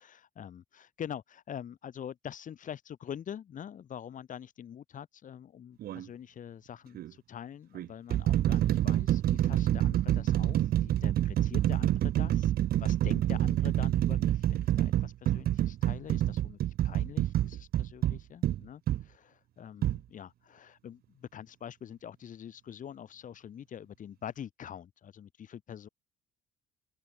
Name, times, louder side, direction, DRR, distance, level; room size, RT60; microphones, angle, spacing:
voice 1, 0.0-12.5 12.8-16.6 16.8-25.9, left 9 dB, 50° left, 7.2 m, -45 dB
Erratic Beating, 5.8-6.1 6.9-7.1 7.7-19.0 19.8-20.0, right 13 dB, 65° right, 1.6 m, -27 dB
open air
cardioid pair, 110°, 17 cm